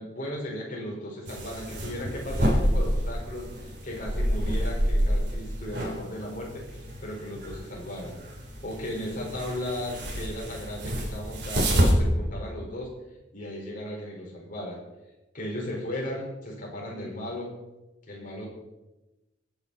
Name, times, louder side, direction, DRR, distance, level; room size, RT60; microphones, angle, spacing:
voice 1, 0.0-6.6 7.0-8.2 8.6-12.9 13.3-14.8 15.3-17.6 18.1-18.5, left 1 dB, 45° left, -2 dB, 4.9 m, -36 dB
sound 1, 1.3-11.9, equal, 60° right, 3.8 m, -28 dB
24.5 x 9.4 x 4.2 m, 1.0 s
head